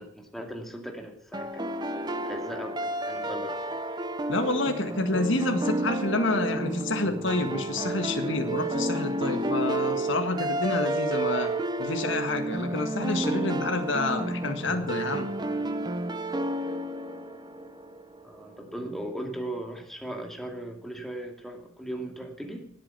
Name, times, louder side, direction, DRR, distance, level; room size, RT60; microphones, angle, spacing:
voice 1, 0.0-3.8 18.2-22.7, right 1 dB, ahead, 2 dB, 2.5 m, -38 dB
sound 1, 1.3-18.2, right 1 dB, 20° right, 1.0 m, -31 dB
voice 2, 4.3-11.5 11.8-15.3, left 2 dB, 60° left, 5 dB, 1.9 m, -28 dB
18.5 x 8.8 x 6.9 m, 0.69 s
head